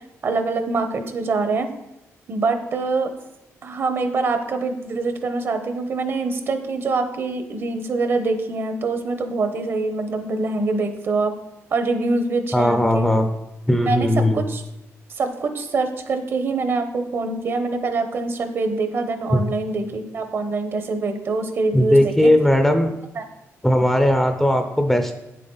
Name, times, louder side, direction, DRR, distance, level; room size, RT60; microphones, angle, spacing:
voice 1, 0.2-1.7 2.3-3.1 3.6-11.3 11.7-13.1 13.8-14.6 15.1-22.3 23.1-23.2, right 3 dB, 45° right, 8 dB, 0.9 m, -24 dB
voice 2, 12.5-13.3 13.7-14.4 19.3-19.4 21.7-22.9 23.6-25.2, left 1 dB, 5° left, 6 dB, 0.6 m, -18 dB
9.4 x 7.7 x 3.9 m, 0.90 s
cardioid pair, 155°, 5 cm